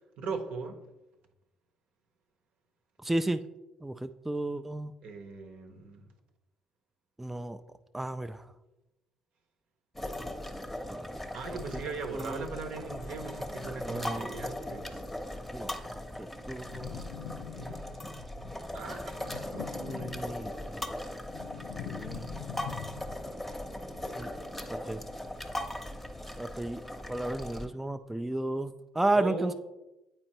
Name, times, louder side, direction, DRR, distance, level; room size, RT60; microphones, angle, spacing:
voice 1, 0.2-0.8 5.0-6.1 11.3-15.0 16.9-20.1 29.1-29.5, right 4 dB, 60° right, 6 dB, 0.8 m, -40 dB
voice 2, 3.0-3.4 3.8-4.9 7.2-7.6 7.9-8.4 10.2-10.3 10.9-11.2 12.1-12.5 13.8-14.3 15.5-17.0 19.7-20.5 21.8-22.3 24.2-24.3 24.7-25.0 26.4-26.8 27.1-29.5, right 2 dB, 10° right, 8 dB, 0.3 m, -33 dB
sound 1, 9.9-27.7, left 1 dB, 10° left, 0.8 m, -39 dB
sound 2, 16.6-18.2 19.2-20.7 21.0-23.4, left 9 dB, 70° left, 0.3 m, -43 dB
8.7 x 4.4 x 2.9 m, 1.0 s
hypercardioid pair, 50°, 2 cm